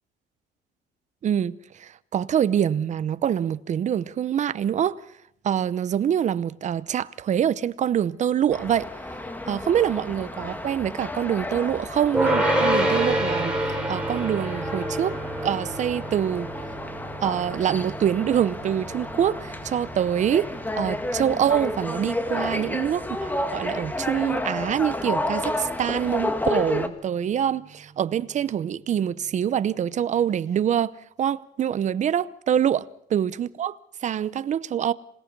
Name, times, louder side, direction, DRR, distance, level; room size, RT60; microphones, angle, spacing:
voice 1, 1.2-5.0 5.4-8.9 9.5-13.6 13.9-15.2 15.4-16.5 17.2-20.5 20.7-30.9 31.2-33.8 34.0-34.9, right 9 dB, 45° right, 0.8 m, -25 dB
sound 1, 8.5-26.9, left 1 dB, 10° left, 1.8 m, -31 dB
sound 2, 12.1-23.5, right 1 dB, 5° right, 5.2 m, -29 dB
27.0 x 18.0 x 5.4 m
cardioid pair, 110°, 17 cm